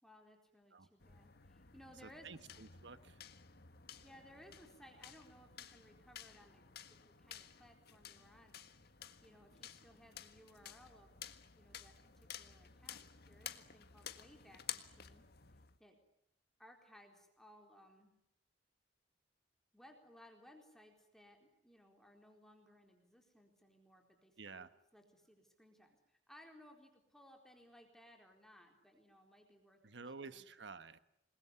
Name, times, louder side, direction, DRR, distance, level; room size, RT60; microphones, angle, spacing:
voice 1, 0.0-2.4 4.0-8.6 9.2-15.3 15.8-16.0 16.6-18.1 19.7-30.5, equal, 5° left, 2 dB, 4.2 m, -62 dB
sound 1, 1.0-15.8, left 9 dB, 60° left, 1.7 m, -53 dB
voice 2, 2.0-3.2 24.4-24.7 29.8-31.0, right 4 dB, 70° right, 12 dB, 1.4 m, -51 dB
27.5 x 21.5 x 9.9 m, 0.81 s
head